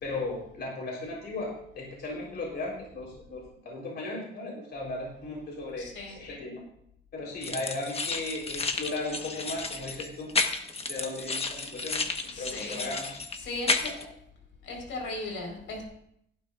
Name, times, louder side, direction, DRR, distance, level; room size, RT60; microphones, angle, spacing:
voice 1, 0.0-6.6 7.1-10.3 10.9-12.0 12.4-13.1, left 2 dB, 60° left, -2 dB, 4.0 m, -36 dB
voice 2, 5.8-6.2 12.3-12.9 13.4-14.1 14.6-15.8, left 2 dB, 75° left, 1 dB, 4.5 m, -37 dB
sound 1, 7.4-14.0, left 3 dB, 30° left, 1.3 m, -32 dB
17.0 x 11.5 x 2.5 m, 0.73 s
cardioid pair, 90°, 20 cm